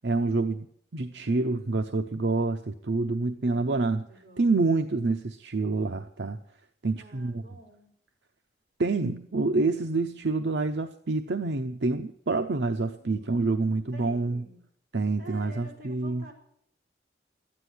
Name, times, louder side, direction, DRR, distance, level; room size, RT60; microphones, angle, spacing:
voice 1, 0.0-0.7 0.9-4.1 4.4-6.4 6.8-7.4 8.8-14.4 14.9-16.3, right 3 dB, 75° right, 7 dB, 0.8 m, -27 dB
voice 2, 3.4-3.8 4.1-5.0 7.0-7.9 12.9-14.6 15.2-16.3, right 1 dB, 45° right, 0 dB, 5.1 m, -50 dB
13.0 x 9.8 x 9.8 m, 0.68 s
head